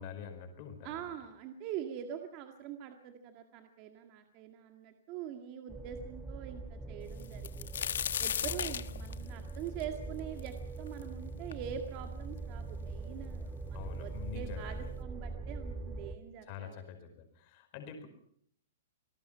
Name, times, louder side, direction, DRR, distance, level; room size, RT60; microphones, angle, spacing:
voice 1, 0.0-1.1 8.5-8.6 13.7-14.9 16.4-18.1, left 7 dB, 35° left, 6 dB, 5.2 m, -46 dB
voice 2, 0.8-7.7 8.2-16.8, right 9 dB, 30° right, 5 dB, 1.9 m, -44 dB
sound 1, 5.7-16.1, right 3 dB, 5° right, 1.2 m, -42 dB
sound 2, 7.2-11.0 11.5-11.6 12.4-12.5 12.7-13.4 14.3-14.4 14.8-15.0, left 9 dB, 80° left, 1.4 m, -36 dB
27.5 x 18.5 x 5.7 m, 0.64 s
hypercardioid pair, 170°, 0 cm